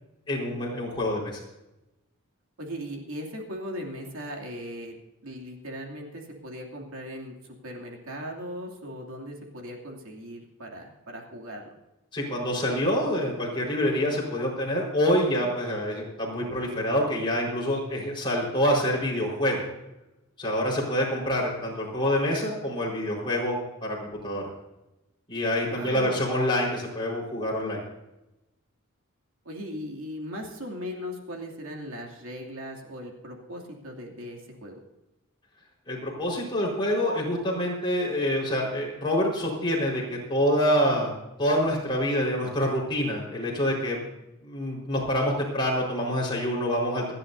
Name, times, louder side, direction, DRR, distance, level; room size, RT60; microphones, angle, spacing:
voice 1, 0.3-1.4 12.1-19.6 20.4-23.6 23.8-24.4 25.3-27.8 35.9-41.1 41.4-44.0 44.4-47.1, equal, 20° left, -4 dB, 4.6 m, -26 dB
voice 2, 2.6-4.9 5.2-11.7 25.7-26.1 29.4-34.8, equal, 70° right, 0 dB, 2.7 m, -38 dB
27.5 x 10.5 x 2.7 m, 0.95 s
head